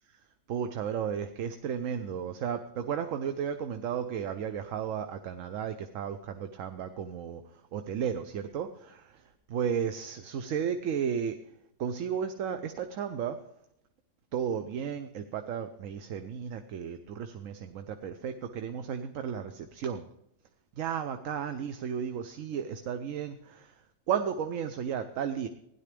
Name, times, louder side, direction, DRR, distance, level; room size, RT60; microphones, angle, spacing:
voice 1, 0.5-7.4 7.7-9.2 9.5-11.4 11.8-13.4 14.3-20.0 20.8-23.7 24.1-25.5, right 8 dB, 75° right, 8 dB, 1.1 m, -34 dB
16.5 x 11.0 x 3.4 m, 0.79 s
omnidirectional pair, 1.4 m